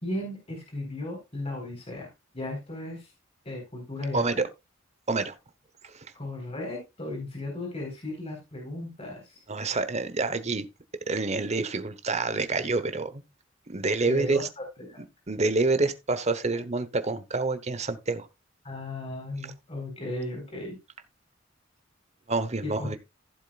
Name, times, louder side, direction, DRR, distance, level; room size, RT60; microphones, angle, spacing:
voice 1, 0.0-2.1 2.3-3.1 3.4-4.2 6.1-9.4 14.1-15.0 18.6-20.8 22.6-23.0, left 1 dB, 30° left, 4.2 m, -36 dB
voice 2, 4.1-4.5 5.1-5.4 5.8-6.1 9.5-10.7 11.1-13.2 13.7-14.5 15.3-18.3 22.3-23.0, right 3 dB, 35° right, 1.0 m, -27 dB
15.5 x 7.4 x 2.4 m
head